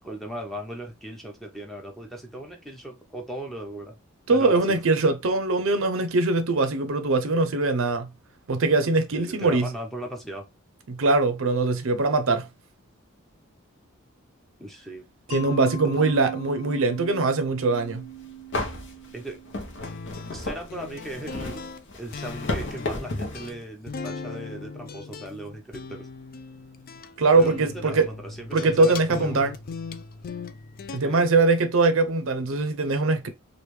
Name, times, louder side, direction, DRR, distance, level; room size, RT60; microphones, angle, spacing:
voice 1, 0.0-4.0 4.3-4.8 9.1-10.5 14.6-15.1 15.7-16.1 19.1-19.4 20.3-21.6 22.0-26.1 27.3-29.5 30.9-31.3, right 1 dB, ahead, 0.7 m, -38 dB
voice 2, 4.3-8.1 8.5-9.7 10.9-12.5 15.3-18.0 27.2-28.1 28.5-29.5 30.9-33.3, right 3 dB, 65° right, 0.5 m, -22 dB
Mallet percussion, 15.3-20.1, right 7 dB, 85° left, 0.9 m, -38 dB
sound 1, 17.9-18.0 18.5-23.5, left 2 dB, 60° left, 0.9 m, -33 dB
sound 2, 19.8-31.0, left 4 dB, 45° left, 0.4 m, -39 dB
3.2 x 2.5 x 3.1 m
head